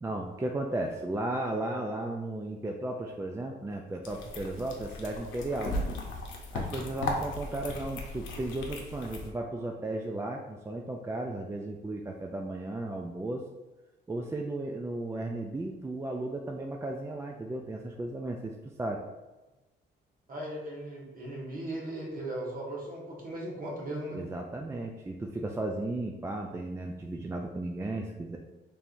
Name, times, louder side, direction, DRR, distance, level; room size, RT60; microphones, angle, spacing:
voice 1, 0.0-5.9 6.5-13.4 14.1-19.0 24.1-28.4, right 2 dB, 15° right, 2 dB, 0.3 m, -35 dB
sound 1, 4.0-9.3, left 2 dB, 80° left, 0.8 m, -37 dB
voice 2, 20.3-24.2, right 1 dB, 45° right, -3 dB, 1.4 m, -37 dB
4.2 x 3.5 x 2.5 m, 1.1 s
cardioid pair, 90°, 20 cm